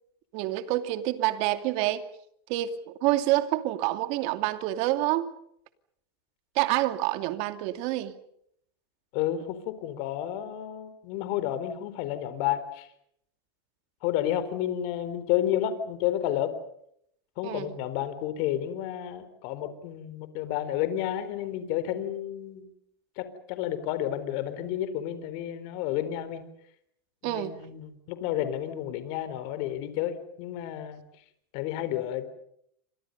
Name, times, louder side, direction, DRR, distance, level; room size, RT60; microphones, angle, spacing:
voice 1, 0.3-2.1 2.5-2.7 3.0-5.3 6.5-8.1 17.4-17.8 27.2-27.6, right 15 dB, 55° right, 9 dB, 2.6 m, -27 dB
voice 2, 9.1-12.9 14.0-16.6 17.4-22.7 23.2-26.4 27.2-31.0 31.5-32.3, left 11 dB, 55° left, 12 dB, 4.2 m, -31 dB
29.5 x 26.5 x 5.5 m, 0.71 s
supercardioid pair, 125°, 13 cm